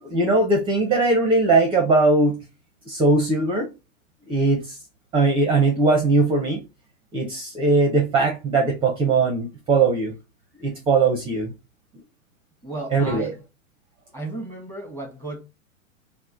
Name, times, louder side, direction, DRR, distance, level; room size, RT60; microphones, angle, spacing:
voice 1, 0.0-2.4 2.9-3.7 4.3-4.8 5.1-6.6 7.1-10.1 10.6-11.5 12.9-13.3, right 3 dB, 10° right, 0.6 m, -20 dB
voice 2, 12.6-13.4 14.1-15.4, right 2 dB, 5° left, 0.9 m, -34 dB
3.0 x 2.1 x 3.6 m
hypercardioid pair, 110°, 42 cm